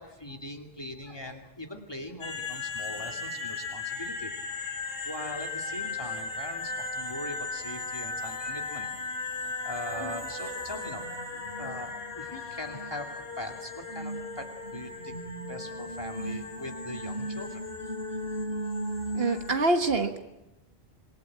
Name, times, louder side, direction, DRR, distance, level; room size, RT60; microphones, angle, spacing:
voice 1, 0.0-4.3 5.0-8.9 9.2-9.4 9.6-15.2 15.5-17.9, left 1 dB, 25° left, 3 dB, 2.7 m, -41 dB
sound 1, 2.2-19.6, left 2 dB, 65° left, 3.8 m, -36 dB
voice 2, 19.2-20.2, right 2 dB, 70° right, 7 dB, 1.8 m, -25 dB
26.5 x 22.0 x 8.8 m, 0.94 s
omnidirectional pair, 1.0 m